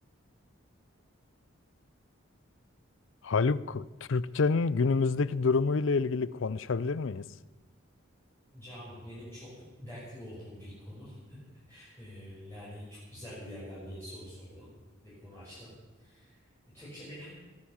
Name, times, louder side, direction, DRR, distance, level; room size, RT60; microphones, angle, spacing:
voice 1, 3.2-7.2, left 4 dB, 70° left, 0.5 m, -27 dB
voice 2, 8.5-11.4 11.7-14.7 15.0-15.7 16.0-17.5, equal, 10° left, 6.4 m, -46 dB
21.0 x 9.6 x 7.2 m
head